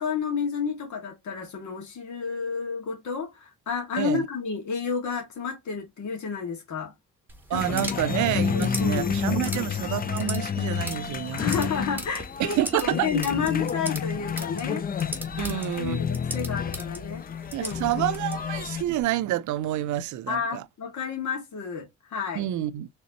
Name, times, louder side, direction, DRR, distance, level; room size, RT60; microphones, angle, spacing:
voice 1, 0.0-6.9 7.5-8.0 8.5-9.2 9.5-9.7 11.3-14.9 15.4-17.2 17.6-18.2 20.3-22.5, left 6 dB, 70° left, 2.0 m, -31 dB
sound 1, 7.3-19.0, right 1 dB, 5° right, 1.2 m, -40 dB
sound 2, 7.5-18.8, left 7 dB, 30° left, 0.4 m, -30 dB
voice 2, 7.5-11.4 12.4-13.1 15.4-16.0 17.5-20.6 22.4-22.9, right 13 dB, 75° right, 0.5 m, -28 dB
4.2 x 3.6 x 2.8 m
cardioid pair, 90°, 30 cm